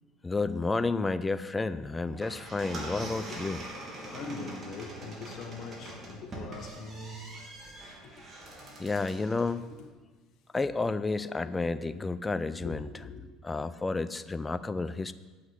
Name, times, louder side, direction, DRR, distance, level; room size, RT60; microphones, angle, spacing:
voice 1, 0.2-3.6 8.8-9.7 10.5-13.1 13.4-15.1, left 3 dB, 15° left, 0.4 m, -31 dB
sound 1, 2.0-9.6, right 1 dB, 35° right, 3.0 m, -43 dB
voice 2, 4.1-7.3 12.6-13.2, left 3 dB, 55° left, 1.6 m, -41 dB
8.2 x 5.8 x 7.8 m
supercardioid pair, 90°, 0 cm